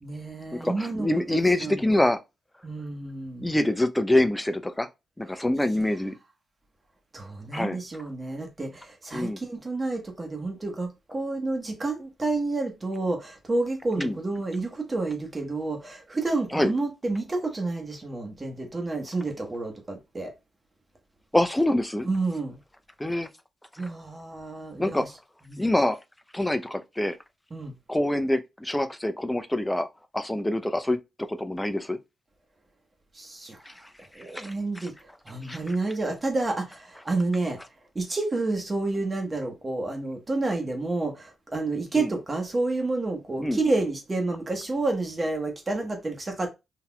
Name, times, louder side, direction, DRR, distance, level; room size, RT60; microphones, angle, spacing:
voice 1, 0.0-2.0 2.6-3.5 5.3-5.4 7.1-20.3 22.0-22.6 23.8-25.1 25.5-25.6 27.5-27.7 33.1-33.6 34.1-34.9 35.2-37.6 37.9-46.5, right 2 dB, 30° right, 1.1 m, -30 dB
voice 2, 0.5-2.2 3.4-4.9 5.2-6.1 7.5-7.8 9.1-9.4 14.0-14.2 16.5-16.7 21.3-22.1 23.0-23.3 24.8-25.0 25.6-26.0 26.3-27.2 27.9-29.9 30.1-32.0 33.7-33.8 34.3-34.5 35.4-35.6 42.0-42.1 43.4-43.6, left 1 dB, 10° left, 0.6 m, -25 dB
3.9 x 2.8 x 2.3 m
supercardioid pair, 50°, 0 cm